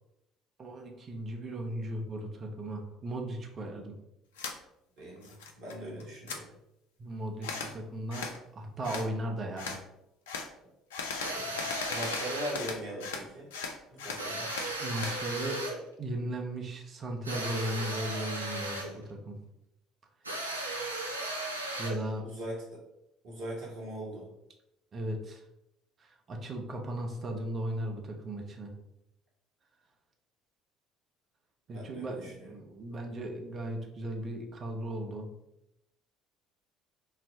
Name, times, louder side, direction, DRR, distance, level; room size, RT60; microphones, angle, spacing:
voice 1, 0.6-4.0 7.0-9.8 14.8-15.6 16.0-19.4 21.8-22.3 24.9-25.4 26.0-28.7 31.7-35.3, right 1 dB, 40° right, 2 dB, 0.6 m, -36 dB
sound 1, 4.4-4.6 5.0-5.7 6.0-6.4 7.4-7.7 8.1-8.4 8.8-9.1 9.6-9.8 10.3-10.5 10.9-13.2 13.5-15.2, left 5 dB, 70° left, 0.3 m, -38 dB
voice 2, 5.0-6.5 11.3-13.5 13.9-14.5 22.2-22.8 23.2-24.3 31.7-32.5, equal, 55° right, -4 dB, 1.1 m, -40 dB
sound 2, 11.2-12.7 14.2-15.8 17.2-19.0 20.2-22.1, right 1 dB, 85° right, 0.3 m, -36 dB
3.9 x 2.0 x 2.6 m, 0.85 s
figure-of-eight pair, 55°, 0 cm